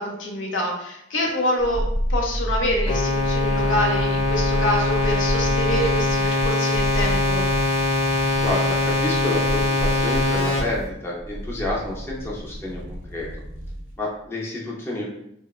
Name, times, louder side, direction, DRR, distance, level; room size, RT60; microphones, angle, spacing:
voice 1, 0.0-7.5, left 1 dB, 80° left, 0 dB, 0.6 m, -26 dB
sound 1, 1.6-14.0 14.2-14.3, equal, 80° right, 0.6 m, -29 dB
sound 2, 2.9-10.6, left 2 dB, 30° left, 0.8 m, -22 dB
voice 2, 8.4-13.3 14.0-15.1, left 2 dB, 15° left, -4 dB, 0.4 m, -29 dB
3.0 x 2.0 x 2.3 m, 0.77 s
head